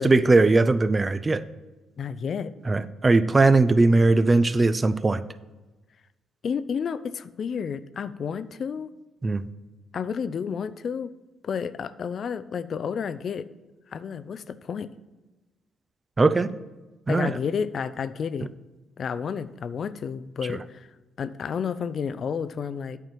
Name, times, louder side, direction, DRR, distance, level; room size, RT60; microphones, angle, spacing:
voice 1, 0.0-1.4 2.7-5.2 9.2-9.4 16.2-16.5 17.1-17.4, right 3 dB, 30° right, 14 dB, 0.5 m, -19 dB
voice 2, 2.0-2.5 6.4-8.9 9.9-11.1 11.4-13.5 13.9-14.9 17.1-18.5 19.0-20.9 21.2-23.0, left 6 dB, 55° left, 14 dB, 0.5 m, -31 dB
9.0 x 4.5 x 7.4 m, 1.1 s
supercardioid pair, 60°, 0 cm